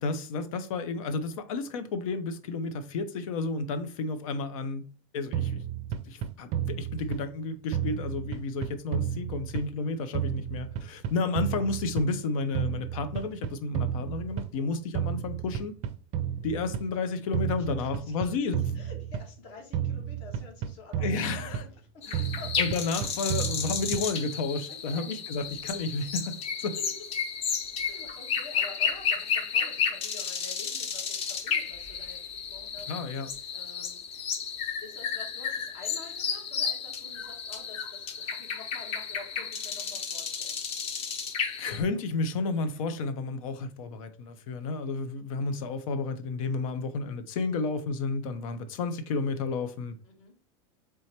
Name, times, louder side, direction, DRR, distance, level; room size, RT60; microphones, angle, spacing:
voice 1, 0.0-4.8 5.1-5.6 6.1-15.8 16.4-18.8 21.0-21.6 22.1-22.2 22.6-26.7 32.9-33.3 41.6-49.9, left 3 dB, 80° left, 0.7 m, -32 dB
sound 1, 5.3-7.4 7.7-9.9 10.1-12.3 12.5-14.6 14.9-16.9 17.3-19.4 19.7-21.8 22.1-24.3, right 9 dB, 40° right, 0.4 m, -32 dB
voice 2, 17.6-18.2 18.7-22.6 23.0-23.9 24.7-25.1 26.7-26.8 27.7-32.9 33.5-34.0 34.8-40.6 50.0-50.4, left 3 dB, 60° left, 1.7 m, -49 dB
sound 2, 22.0-41.8, left 6 dB, 35° left, 0.8 m, -32 dB
4.6 x 3.3 x 2.9 m
supercardioid pair, 150°, 17 cm